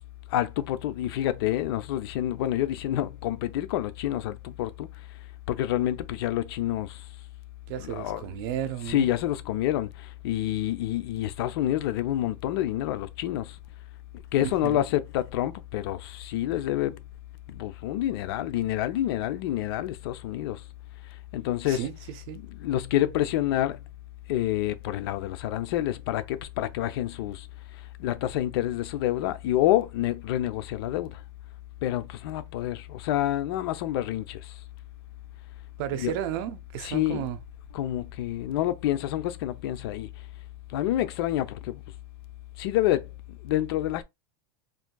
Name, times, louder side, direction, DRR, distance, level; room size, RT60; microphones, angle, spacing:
voice 1, 0.3-4.9 5.5-6.9 7.8-8.2 8.9-9.9 10.2-13.5 14.3-16.9 17.6-20.6 21.3-21.9 22.6-23.8 24.3-27.4 28.0-31.1 31.8-34.4 36.0-36.1 36.8-37.2 37.7-40.1 40.7-41.7 42.6-43.0 43.4-44.0, left 13 dB, 70° left, 0.6 m, -28 dB
voice 2, 7.7-9.1 14.4-14.8 21.7-22.4 35.8-37.4, right 11 dB, 65° right, 0.6 m, -33 dB
3.6 x 2.6 x 2.2 m
supercardioid pair, 135°, 13 cm